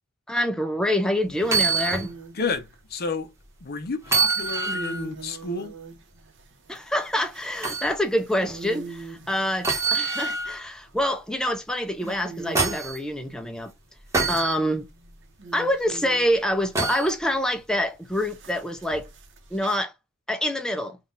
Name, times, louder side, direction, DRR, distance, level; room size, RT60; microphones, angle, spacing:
voice 1, 0.3-2.1 6.7-13.7 14.3-14.9 15.5-19.1 19.5-19.9 20.3-21.0, equal, 5° left, 0.4 m, -26 dB
sound 1, 1.4-2.1 2.5-2.6 4.0-5.1 7.6-7.9 9.6-10.6 12.1-13.0 14.1-14.6 16.7-17.1 18.9-19.0, right 4 dB, 15° right, 1.2 m, -25 dB
sound 2, 1.4-2.8 4.1-10.0 10.6-11.3 11.7-11.8 12.0-13.0 14.3-16.6 18.1-19.8, right 4 dB, 60° right, 1.0 m, -43 dB
voice 2, 2.3-3.3 3.6-5.7, left 4 dB, 45° left, 0.7 m, -30 dB
3.8 x 2.4 x 3.8 m
head